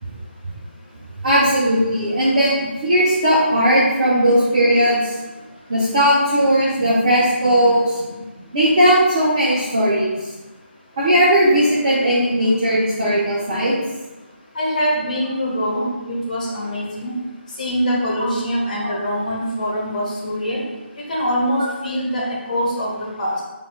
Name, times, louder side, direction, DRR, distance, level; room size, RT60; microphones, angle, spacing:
voice 1, 1.2-5.2 5.7-8.0 8.5-10.3 11.0-13.7, equal, 35° right, -9 dB, 1.0 m, -17 dB
voice 2, 14.5-17.1 17.6-20.6 20.9-23.4, equal, 40° left, -4 dB, 1.2 m, -23 dB
6.7 x 2.6 x 2.2 m, 1.1 s
figure-of-eight pair, 155°, 6 cm